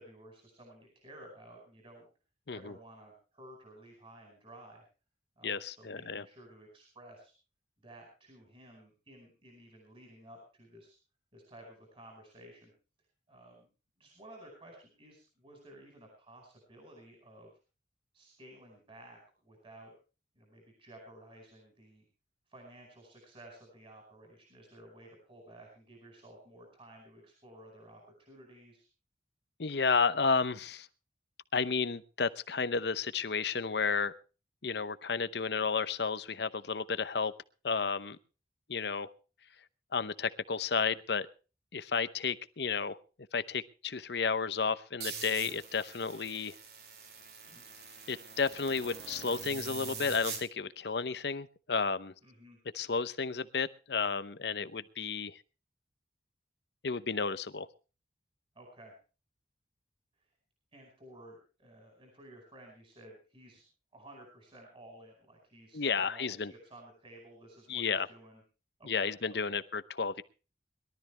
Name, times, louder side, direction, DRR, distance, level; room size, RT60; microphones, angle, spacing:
voice 1, 0.0-2.1 2.5-4.8 5.4-7.3 7.8-11.0 11.3-12.7 13.3-13.7 14.0-17.5 18.1-19.9 20.3-22.1 22.5-28.9 47.5-47.7 52.2-52.6 58.5-58.9 60.7-63.6 63.9-68.4 68.8-69.6, right 1 dB, 30° right, 5.0 m, -54 dB
voice 2, 5.4-6.2 29.6-30.9 31.5-34.1 34.6-37.3 37.6-38.2 38.7-39.1 39.9-41.3 41.7-43.0 43.3-46.5 48.1-52.1 52.7-55.4 56.8-57.7 65.7-66.5 67.7-68.1 68.8-70.2, left 5 dB, 65° left, 0.8 m, -32 dB
sound 1, 45.0-50.4, right 6 dB, 60° right, 2.8 m, -44 dB
21.5 x 13.0 x 3.3 m
head